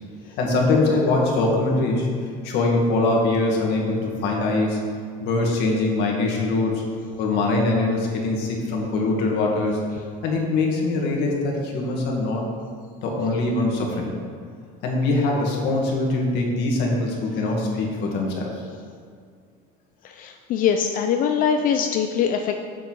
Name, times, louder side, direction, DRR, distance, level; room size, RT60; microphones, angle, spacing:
voice 1, 0.4-2.1 2.4-4.8 5.2-6.7 7.2-9.8 10.2-12.4 13.0-14.2 14.8-18.5, left 2 dB, 65° left, -1 dB, 2.0 m, -22 dB
voice 2, 20.0-22.6, left 7 dB, 50° left, 5 dB, 0.6 m, -22 dB
7.1 x 6.7 x 6.3 m, 2.2 s
cardioid pair, 150°, 18 cm